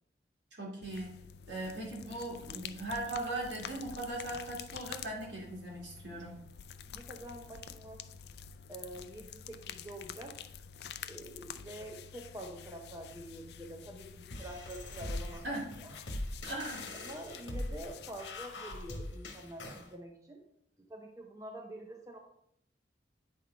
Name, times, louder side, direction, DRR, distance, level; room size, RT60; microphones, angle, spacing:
voice 1, 0.6-1.2 1.5-6.3 15.4-15.8 16.4-16.9, right 1 dB, 70° right, -3 dB, 2.5 m, -39 dB
sound 1, 0.8-19.7, left 8 dB, 60° left, 0.4 m, -49 dB
voice 2, 6.9-8.0 8.7-10.3 11.0-15.4 17.0-20.4 20.9-22.2, right 1 dB, 15° right, 2 dB, 0.6 m, -46 dB
sound 2, 14.3-19.9, left 1 dB, 80° left, 1.2 m, -41 dB
8.8 x 3.9 x 4.6 m, 0.74 s
head